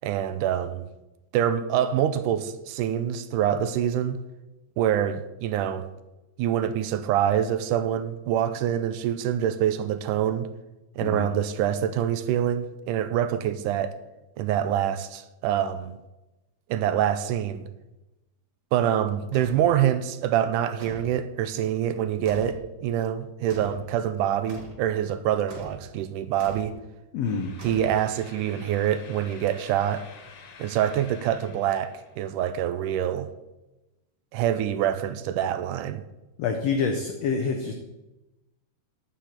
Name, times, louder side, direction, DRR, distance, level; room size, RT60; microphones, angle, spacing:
voice 1, 0.0-0.8 1.3-4.2 4.8-5.9 6.4-10.5 11.0-14.0 14.4-16.0 16.7-17.7 18.7-26.7 27.6-30.1 30.6-33.3 34.3-36.0, right 10 dB, 80° right, 2.0 m, -25 dB
sound 1, 19.3-19.7 20.8-21.2 22.3-22.7 23.5-23.9 24.5-24.8 25.5-25.9 26.4-26.7 27.6-28.2, equal, 45° right, 1.9 m, -41 dB
voice 2, 27.1-27.5 36.4-37.7, left 5 dB, 70° left, 1.6 m, -27 dB
sound 2, 27.2-32.2, left 5 dB, 90° left, 3.3 m, -49 dB
10.0 x 5.7 x 8.1 m
omnidirectional pair, 3.9 m